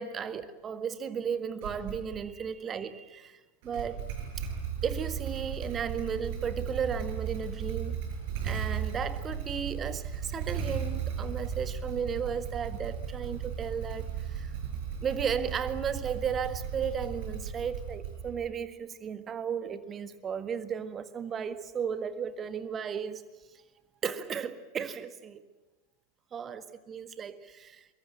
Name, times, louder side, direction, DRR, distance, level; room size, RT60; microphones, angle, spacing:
voice 1, 0.0-4.0 4.4-4.5 4.8-8.0 8.4-14.7 15.0-23.2 24.0-25.4 26.3-27.9, right 7 dB, 25° right, 1.7 m, -35 dB
Motorcycle / Engine starting, 1.6-2.3 3.6-18.5, right 7 dB, 50° right, 7.0 m, -36 dB
24.0 x 22.5 x 8.8 m
figure-of-eight pair, 90°, 0 cm